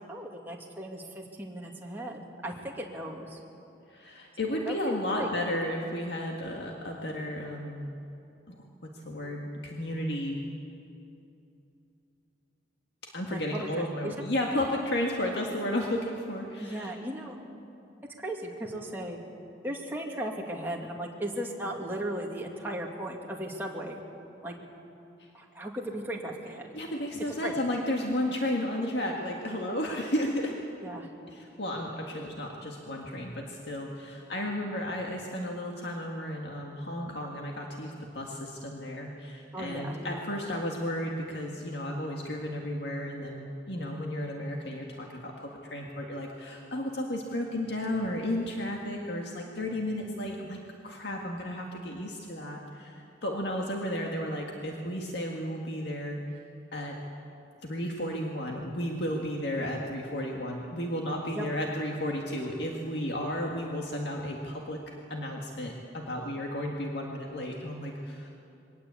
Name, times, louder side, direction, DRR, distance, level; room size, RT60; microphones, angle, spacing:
voice 1, 0.1-3.4 4.6-5.3 13.3-14.1 16.6-17.4 18.2-19.2 19.6-24.0 24.4-24.5 25.3-26.7 27.4-27.5 30.8-31.1 39.5-40.0 61.3-61.5, right 1 dB, 10° right, -2 dB, 2.3 m, -36 dB
voice 2, 3.9-7.9 8.5-10.4 13.0-16.9 26.7-30.6 31.3-56.2 56.7-57.0 57.6-68.3, left 1 dB, 60° left, 0 dB, 2.0 m, -33 dB
22.5 x 18.5 x 8.4 m, 2.7 s
head